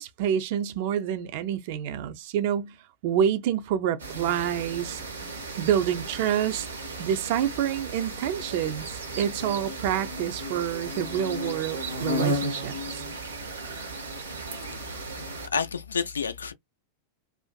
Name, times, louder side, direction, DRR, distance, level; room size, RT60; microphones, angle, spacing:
voice 1, 0.0-2.8 3.0-5.3 5.6-6.7 7.0-13.0, right 9 dB, 50° right, 0.4 m, -28 dB
sound 1, 4.0-15.5, right 1 dB, 75° right, 0.8 m, -34 dB
voice 2, 15.5-16.5, left 6 dB, 75° left, 0.3 m, -29 dB
2.5 x 2.4 x 2.2 m
figure-of-eight pair, 90°, 0 cm